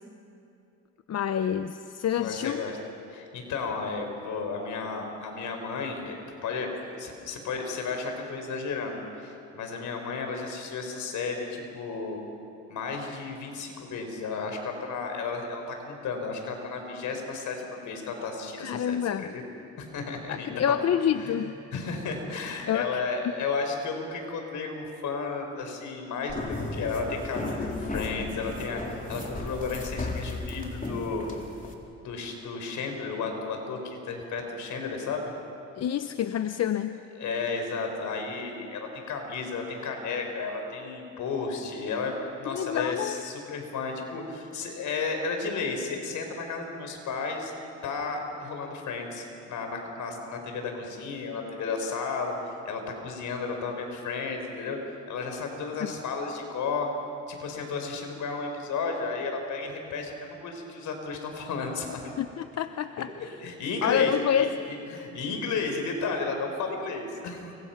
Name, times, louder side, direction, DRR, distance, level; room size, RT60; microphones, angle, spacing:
voice 1, 1.1-2.6 18.6-19.2 20.3-21.5 22.7-23.0 35.8-37.0 42.5-43.2 55.8-55.9 62.2-63.1 63.8-64.5, left 9 dB, 55° left, 10 dB, 0.8 m, -27 dB
voice 2, 2.2-2.8 3.1-6.2 6.4-12.2 12.7-19.4 19.8-20.8 21.2-21.5 21.7-28.8 29.1-31.3 32.0-35.3 37.2-47.5 47.8-54.8 55.1-56.9 57.3-62.1 63.2-64.5 64.9-67.5, left 4 dB, 75° left, 4 dB, 5.2 m, -33 dB
sound 1, 26.3-31.7, left 2 dB, 25° left, 3.7 m, -35 dB
29.0 x 25.5 x 6.0 m, 2.8 s
cardioid pair, 90°, 30 cm